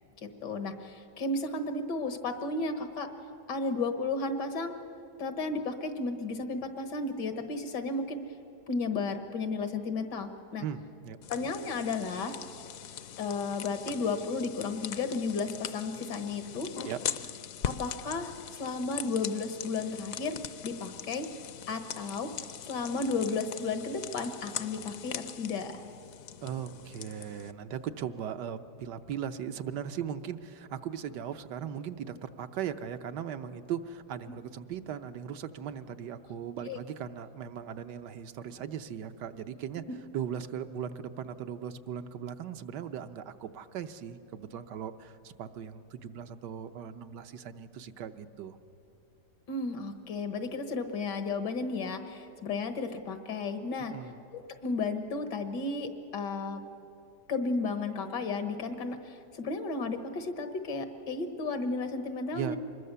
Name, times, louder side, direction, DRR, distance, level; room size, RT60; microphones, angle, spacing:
voice 1, 0.2-3.1 3.5-4.7 5.2-8.2 8.7-10.6 11.3-12.3 13.2-16.7 17.6-20.4 20.6-21.3 21.7-22.3 22.7-25.8 36.7-36.8 49.5-53.9 54.3-56.6 57.3-62.6, left 3 dB, 85° left, 8 dB, 2.0 m, -33 dB
voice 2, 10.6-11.2 16.8-17.0 26.4-39.8 40.1-48.6 53.9-54.2 62.3-62.6, right 8 dB, 85° right, 8 dB, 1.4 m, -38 dB
sound 1, 11.2-27.5, left 9 dB, 65° left, 0.9 m, -41 dB
25.0 x 21.0 x 6.9 m, 2.6 s
omnidirectional pair, 1.8 m